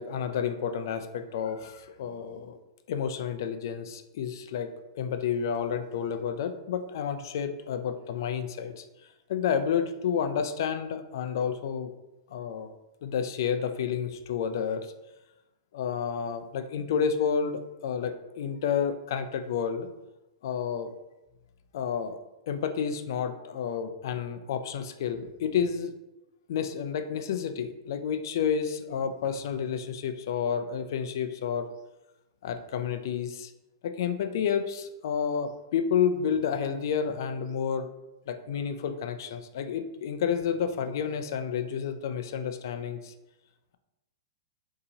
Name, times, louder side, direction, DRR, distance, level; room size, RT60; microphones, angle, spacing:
voice 1, 0.0-2.6 2.9-8.9 9.3-11.9 12.3-12.7 13.0-14.9 15.7-19.9 20.4-20.9 21.7-22.2 22.5-25.9 26.5-31.7 32.4-33.5 33.8-37.9 38.3-43.1, left 7 dB, 65° left, 9 dB, 0.3 m, -30 dB
3.9 x 2.7 x 2.8 m, 1.0 s
hypercardioid pair, 135°, 2 cm